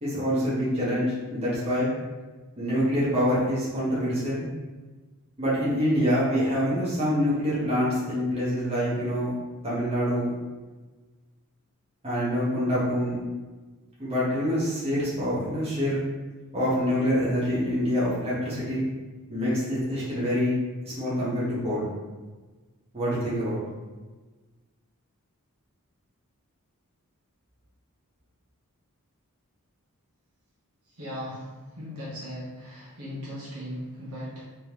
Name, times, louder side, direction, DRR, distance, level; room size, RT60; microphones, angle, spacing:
voice 1, 0.0-1.9 2.6-4.5 5.4-9.3 9.6-10.3 12.0-13.2 14.0-16.0 16.5-18.8 19.3-20.5 20.8-21.9 22.9-23.6, equal, 30° right, -9 dB, 1.3 m, -26 dB
voice 2, 31.0-31.5 31.7-34.4, equal, 75° right, -7 dB, 1.2 m, -37 dB
3.3 x 3.0 x 3.3 m, 1.3 s
head